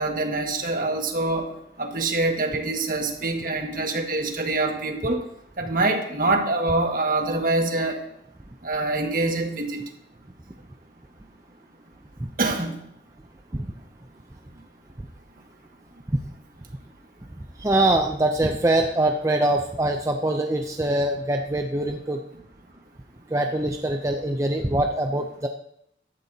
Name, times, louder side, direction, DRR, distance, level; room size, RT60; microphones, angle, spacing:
voice 1, 0.0-1.5 1.8-5.3 5.6-8.0 8.6-9.8 12.4-12.8, right 2 dB, 50° right, 2 dB, 1.8 m, -25 dB
voice 2, 17.6-22.2 23.3-25.5, right 1 dB, 15° right, 4 dB, 0.5 m, -23 dB
14.5 x 12.0 x 2.8 m, 0.74 s
head